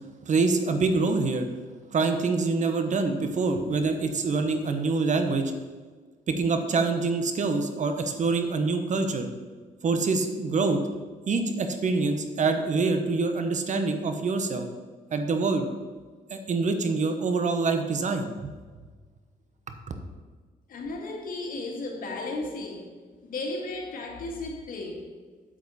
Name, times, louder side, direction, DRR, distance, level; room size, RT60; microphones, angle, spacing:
voice 1, 0.2-1.5 1.9-5.5 6.3-9.3 9.8-10.8 11.3-14.7 15.1-15.7 16.3-18.5, right 3 dB, 55° right, 1.1 m, -25 dB
voice 2, 20.7-23.0 23.3-25.1, left 2 dB, 70° left, 1.8 m, -34 dB
8.3 x 7.6 x 4.2 m
cardioid pair, 80°, 15 cm